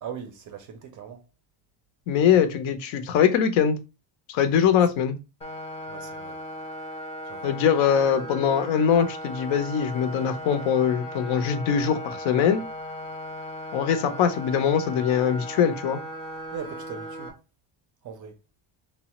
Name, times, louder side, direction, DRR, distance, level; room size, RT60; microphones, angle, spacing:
voice 1, 0.0-1.2 4.7-4.8 5.9-6.4 7.3-7.6 16.5-17.3 18.0-18.4, right 8 dB, 45° right, 0.4 m, -39 dB
voice 2, 2.1-3.8 4.3-5.2 7.4-12.6 13.7-16.0, left 8 dB, 70° left, 0.6 m, -22 dB
sound 1, 5.4-17.3, equal, 15° left, 0.5 m, -37 dB
3.1 x 2.0 x 2.8 m
cardioid pair, 170°, 48 cm